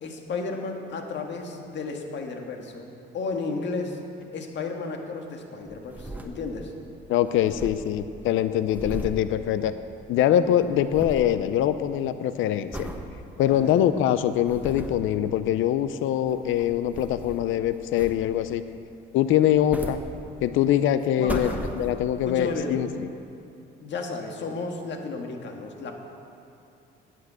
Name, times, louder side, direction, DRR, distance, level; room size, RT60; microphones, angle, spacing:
voice 1, 0.0-2.9 3.1-4.0 4.3-6.7 13.5-14.1 21.2-21.6 22.2-22.8 23.8-25.9, left 4 dB, 65° left, 3 dB, 1.7 m, -33 dB
sound 1, 5.7-6.8 7.0-7.1 7.3-10.1 10.4-11.4 11.8-12.1 12.7-13.1 13.6-13.7 14.2-15.1 16.1-17.6 17.9-18.5 19.4-20.6 21.0-22.2 22.8-22.9, right 1 dB, 10° right, 1.2 m, -37 dB
voice 2, 7.1-9.7 10.1-12.9 13.4-18.6 19.1-20.0 20.4-22.9, left 11 dB, 85° left, 12 dB, 0.5 m, -23 dB
9.6 x 9.2 x 8.0 m, 2.5 s
cardioid pair, 90°, 20 cm